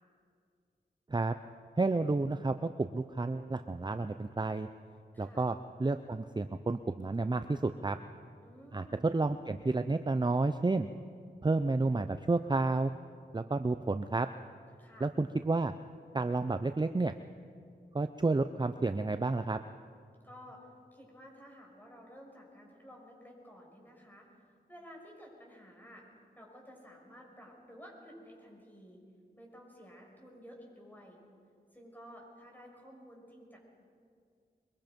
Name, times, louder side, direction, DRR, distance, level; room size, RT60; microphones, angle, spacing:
voice 1, 1.8-4.7 5.2-8.0 8.7-8.8 9.1-10.9 11.4-12.9 13.3-14.3 15.0-15.7 16.1-17.1 17.9-19.6, right 3 dB, 25° right, 9 dB, 0.6 m, -31 dB
voice 2, 5.1-5.4 8.4-9.1 14.8-15.1 20.2-26.0 26.4-29.0 29.3-31.2 31.7-33.6, equal, 10° left, -1 dB, 6.3 m, -53 dB
23.5 x 22.5 x 5.3 m, 2.3 s
wide cardioid pair, 65°, 18 cm